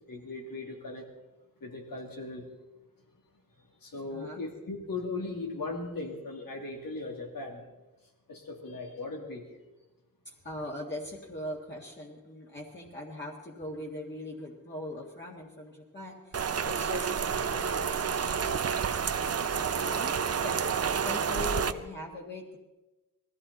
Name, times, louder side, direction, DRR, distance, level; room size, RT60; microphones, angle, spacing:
voice 1, 0.1-1.1 1.6-2.5 3.6-7.6 8.3-9.4 19.5-19.8 21.3-21.7, left 3 dB, 85° left, 1 dB, 3.0 m, -38 dB
voice 2, 4.1-4.4 10.2-22.6, left 1 dB, 30° left, -4 dB, 1.9 m, -41 dB
Rain, 16.3-21.7, right 6 dB, 45° right, 0.6 m, -29 dB
21.0 x 14.5 x 4.2 m, 1.1 s
wide cardioid pair, 155°, 34 cm